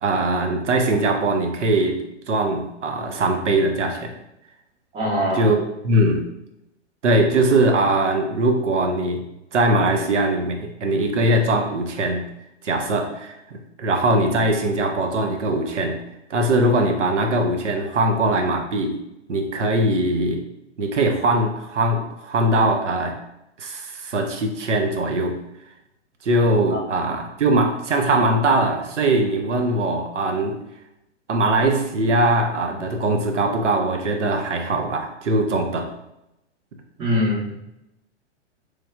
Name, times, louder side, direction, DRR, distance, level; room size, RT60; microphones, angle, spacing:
voice 1, 0.0-2.0 2.3-4.1 5.4-6.3 7.0-12.3 12.6-16.0 16.3-19.0 19.3-20.4 20.8-23.2 23.6-25.4 26.2-30.6 31.3-35.9, right 2 dB, 85° right, 3 dB, 0.5 m, -21 dB
voice 2, 4.9-5.5 26.7-26.8 37.0-37.5, left 1 dB, 15° right, -4 dB, 0.6 m, -22 dB
3.1 x 2.2 x 2.3 m, 0.86 s
figure-of-eight pair, 110°, 35 cm